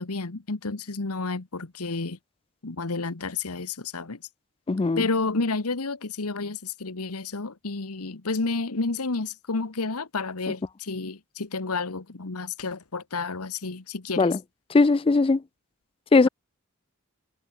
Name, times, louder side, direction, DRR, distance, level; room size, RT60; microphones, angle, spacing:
voice 1, 0.0-2.2 2.6-4.2 5.0-14.3, left 3 dB, 80° left, 1.3 m, -30 dB
voice 2, 4.7-5.1 14.2-14.4 14.7-15.4 16.1-16.3, left 3 dB, 25° left, 0.4 m, -19 dB
head